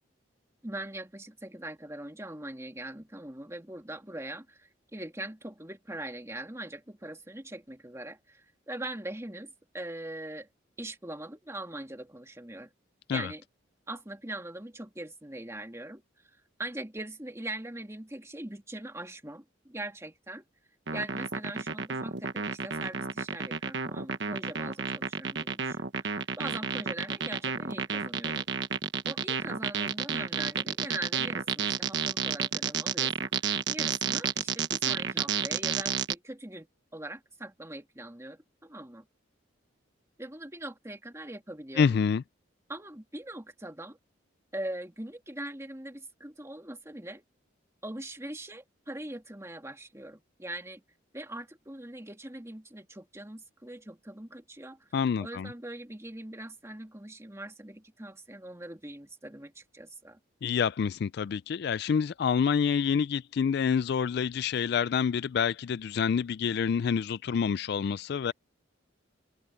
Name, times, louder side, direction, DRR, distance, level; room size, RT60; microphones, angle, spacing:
voice 1, 0.6-10.5 10.8-12.7 13.1-13.4 13.9-20.4 20.9-28.5 29.1-33.3 33.7-36.7 36.9-39.1 40.2-41.9 42.7-44.0 44.5-47.2 47.8-50.8 51.1-54.9 55.2-60.2, right 1 dB, 15° right, 2.5 m, -41 dB
sound 1, 20.9-36.1, right 6 dB, 65° right, 1.3 m, -31 dB
voice 2, 41.8-42.2 54.9-55.5 60.4-68.3, left 6 dB, 55° left, 0.3 m, -27 dB
open air
head